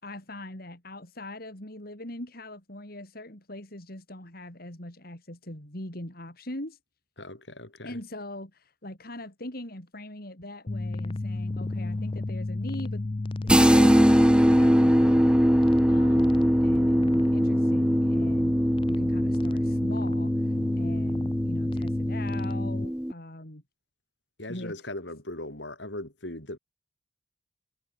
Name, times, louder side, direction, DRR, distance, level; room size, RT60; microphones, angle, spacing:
voice 1, 0.0-6.8 7.8-13.1 13.4-18.6 18.9-23.6 24.5-24.8, left 1 dB, 55° left, 5.7 m, -41 dB
voice 2, 7.2-8.0 24.4-26.6, left 1 dB, 70° left, 6.6 m, -38 dB
sound 1, 10.7-22.9, left 2 dB, 30° left, 0.5 m, -31 dB
sound 2, 13.5-23.1, equal, 5° right, 1.2 m, -22 dB
head